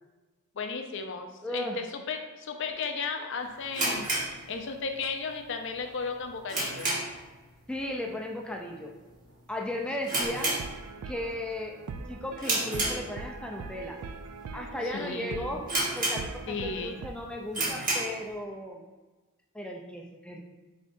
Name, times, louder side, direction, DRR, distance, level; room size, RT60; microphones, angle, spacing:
voice 1, 0.6-6.9 10.2-10.3 14.8-15.5 16.5-17.0, left 5 dB, 55° left, 5 dB, 0.5 m, -35 dB
voice 2, 1.4-1.8 7.7-8.9 9.5-10.6 11.1-14.0 14.5-15.7 16.0-18.8 19.5-20.4, left 1 dB, 5° left, 1 dB, 0.4 m, -36 dB
sound 1, 3.7-5.1 5.3-5.4 6.0-7.3 7.6-7.9 8.2-8.3 9.0-9.2 9.5-9.6 10.0-11.2 11.6-11.9 12.4-13.5 14.1-14.2 14.8-14.9 15.1-15.2 15.7-16.6 17.0-17.1 17.5-18.2, right 2 dB, 40° right, 1.4 m, -30 dB
sound 2, 10.2-17.1, right 4 dB, 80° right, 0.3 m, -42 dB
5.0 x 4.2 x 2.6 m, 1.2 s
head